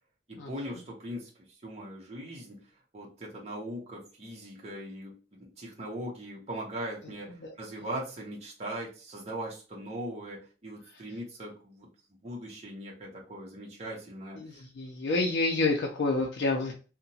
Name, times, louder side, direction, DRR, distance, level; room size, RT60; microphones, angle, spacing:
voice 1, 0.3-1.3 1.6-2.6 2.9-11.9 12.2-14.6, right 1 dB, 40° right, -2 dB, 0.7 m, -40 dB
voice 2, 14.4-16.7, left 3 dB, 90° left, 0 dB, 0.4 m, -28 dB
2.8 x 2.1 x 2.6 m, 0.36 s
head